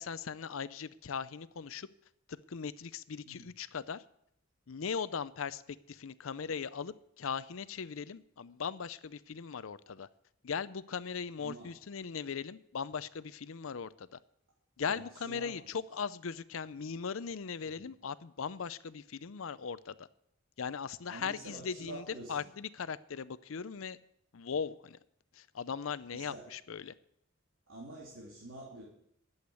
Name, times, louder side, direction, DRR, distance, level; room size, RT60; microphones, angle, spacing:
voice 1, 0.0-1.9 2.3-4.0 4.7-10.1 10.4-14.2 14.8-20.1 20.6-24.0 24.3-25.0 25.3-26.9, left 6 dB, 80° left, 16 dB, 0.6 m, -39 dB
voice 2, 11.4-11.8 14.8-15.6 17.8-17.9 21.1-22.5 26.1-26.5 27.7-28.8, right 2 dB, 75° right, -4 dB, 3.3 m, -47 dB
11.5 x 8.1 x 8.2 m, 0.74 s
head